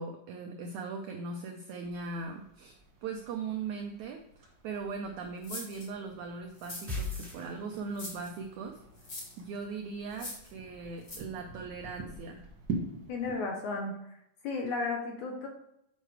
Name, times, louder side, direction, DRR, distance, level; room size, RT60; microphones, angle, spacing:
voice 1, 0.0-2.7 3.0-8.8 9.4-12.5, right 4 dB, 90° right, 4 dB, 1.6 m, -39 dB
sound 1, 1.8-13.4, right 3 dB, 45° right, 1.6 m, -45 dB
sound 2, 5.4-5.9 6.6-7.2 7.9-8.3 9.0-9.4 10.1-10.5 11.0-11.2, left 2 dB, 40° left, 2.0 m, -42 dB
sound 3, 6.9-8.1, left 2 dB, 5° right, 1.6 m, -37 dB
voice 2, 13.1-14.0 14.4-15.5, left 3 dB, 70° left, 2 dB, 1.9 m, -33 dB
8.5 x 5.5 x 4.7 m, 0.79 s
omnidirectional pair, 4.3 m